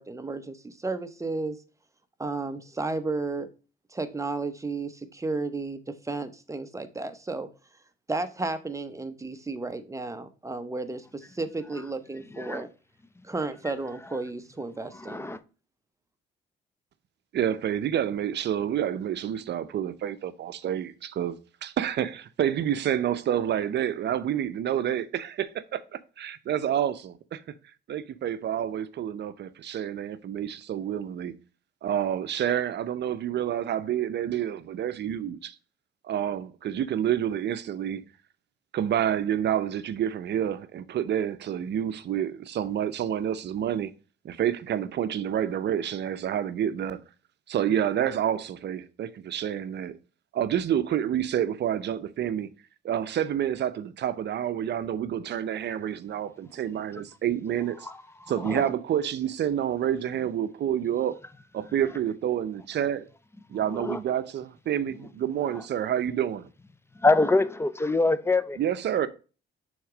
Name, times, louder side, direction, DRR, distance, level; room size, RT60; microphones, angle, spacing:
voice 1, 0.0-1.6 2.2-3.5 3.9-7.5 8.1-12.7 13.2-15.2, right 3 dB, 15° right, 0.8 m, -33 dB
voice 2, 12.3-12.7 14.9-15.4 57.8-58.7 63.7-64.0 65.5-65.6 67.0-68.6, left 3 dB, 15° left, 0.5 m, -25 dB
voice 3, 17.3-27.4 27.9-31.3 31.8-35.6 36.0-38.0 38.7-43.9 44.2-47.0 47.5-50.0 50.3-52.5 52.8-57.9 58.3-61.2 61.5-63.1 63.5-66.5 68.6-69.1, right 10 dB, 60° right, 0.6 m, -28 dB
6.3 x 3.6 x 4.9 m
cardioid pair, 90°, 20 cm